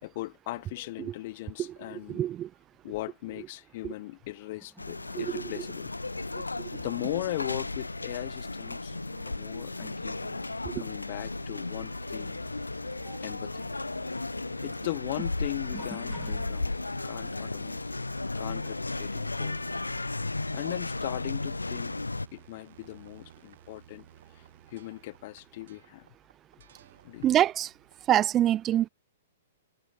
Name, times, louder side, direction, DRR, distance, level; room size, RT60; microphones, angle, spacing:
voice 1, 0.0-2.2 2.8-5.9 6.8-9.0 9.2-10.2 10.8-12.4 13.2-13.7 14.6-16.7 17.0-17.8 18.4-19.6 20.5-21.9 22.3-24.0 24.7-26.1 27.0-27.3, left 18 dB, 45° left, 1.6 m, -38 dB
voice 2, 2.1-2.5 5.2-5.3 10.7-10.8 13.1-13.2 27.2-27.7 28.1-28.9, right 12 dB, 25° right, 0.5 m, -25 dB
sound 1, 4.8-22.3, left 2 dB, 85° left, 0.9 m, -35 dB
sound 2, 11.2-28.3, right 9 dB, 60° right, 4.4 m, -54 dB
sound 3, 15.5-17.0 17.6-18.0 20.2-20.3 21.2-21.3, left 1 dB, ahead, 4.1 m, -54 dB
figure-of-eight pair, 110°, 0 cm